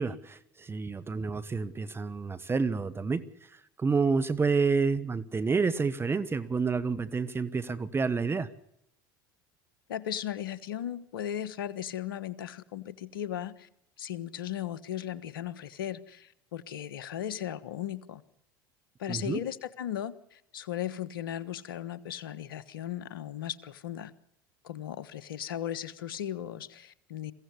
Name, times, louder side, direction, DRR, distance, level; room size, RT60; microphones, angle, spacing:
voice 1, 0.0-3.2 3.8-8.5 19.1-19.4, right 4 dB, 20° right, 1.3 m, -29 dB
voice 2, 9.9-13.7 14.0-18.2 19.0-24.1 24.6-27.3, left 10 dB, 80° left, 1.3 m, -37 dB
22.5 x 16.0 x 9.8 m
hypercardioid pair, 75°, 12 cm